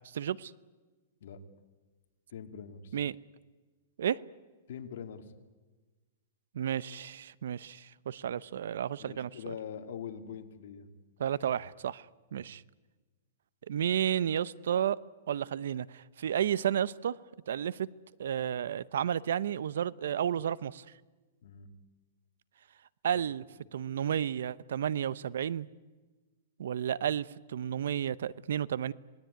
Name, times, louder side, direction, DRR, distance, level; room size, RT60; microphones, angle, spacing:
voice 1, 0.1-0.5 2.9-3.1 4.0-4.2 6.5-9.5 11.2-12.0 12.3-12.6 13.7-15.0 15.3-17.2 17.5-17.9 18.2-20.8 23.0-23.4 23.7-25.7 26.6-28.9, right 9 dB, 75° right, 0.8 m, -32 dB
voice 2, 2.3-3.0 4.7-5.3 9.0-10.9 12.3-12.5 13.9-14.0 21.4-21.7, left 7 dB, 65° left, 2.7 m, -43 dB
27.0 x 20.0 x 9.5 m
hypercardioid pair, 155°, 0 cm